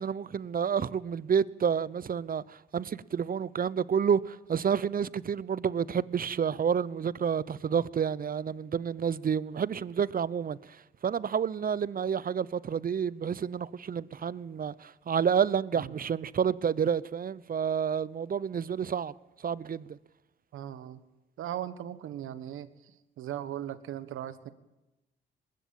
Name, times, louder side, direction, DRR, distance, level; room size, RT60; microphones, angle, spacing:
voice 1, 0.0-10.8 11.0-19.1 19.4-20.0, right 7 dB, 45° right, 0.8 m, -29 dB
voice 2, 20.5-21.0 21.4-22.7 23.2-24.5, right 11 dB, 75° right, 1.5 m, -38 dB
20.5 x 16.0 x 8.8 m
supercardioid pair, 55°, 21 cm